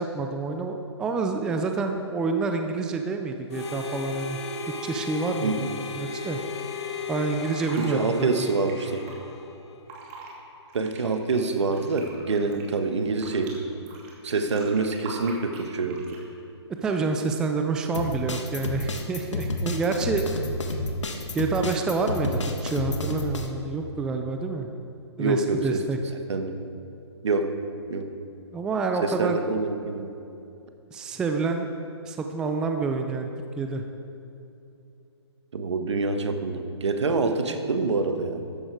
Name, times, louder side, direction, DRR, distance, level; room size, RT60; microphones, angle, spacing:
voice 1, 0.0-4.4 4.8-6.4 7.1-8.5 16.8-20.3 21.3-24.7 25.2-26.0 28.5-29.4 30.9-31.7 32.1-33.3 33.6-33.8, right 4 dB, 5° right, 5 dB, 0.3 m, -28 dB
Harmonica, 3.5-9.9, left 4 dB, 65° left, 1.2 m, -36 dB
Fill (with liquid), 7.1-9.1 9.7-10.3 10.7-13.5 13.9-16.3 16.8-17.2, right 3 dB, 30° right, 2.6 m, -44 dB
voice 2, 7.8-9.1 10.7-13.6 14.2-16.0 25.2-25.8 26.3-26.7 27.2-27.5 27.9-28.1 29.0-30.1 35.5-38.5, right 3 dB, 75° right, 7 dB, 1.4 m, -26 dB
sound 1, 17.9-23.5, left 2 dB, 85° left, 1.6 m, -30 dB
14.0 x 11.0 x 4.8 m, 2.7 s
hypercardioid pair, 150°, 15 cm